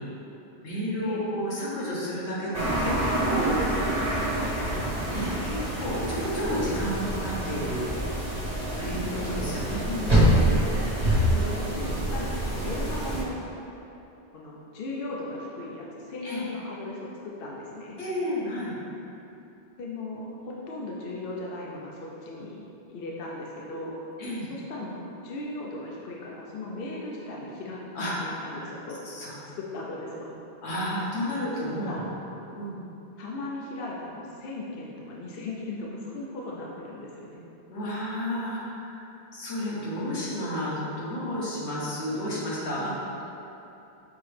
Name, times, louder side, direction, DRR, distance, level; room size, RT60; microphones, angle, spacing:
voice 1, 0.6-2.9 3.2-3.8 4.7-7.8 8.7-10.4 11.1-11.3 11.8-12.0 16.2-16.4 18.0-18.7 23.7-23.9 24.2-24.5 27.9-28.7 29.0-29.4 30.6-32.1 32.4-32.7 37.7-39.1 39.3-42.9, equal, 80° left, -7 dB, 1.3 m, -32 dB
sound 1, 2.5-13.2, right 1 dB, 35° right, 1.1 m, -26 dB
voice 2, 9.5-10.8 11.3-13.3 14.3-18.0 19.8-22.6 22.9-24.0 24.5-29.0 29.6-30.3 31.8-32.1 33.2-37.4, left 2 dB, 60° left, -3 dB, 0.7 m, -37 dB
5.5 x 2.9 x 3.2 m, 2.9 s
omnidirectional pair, 1.1 m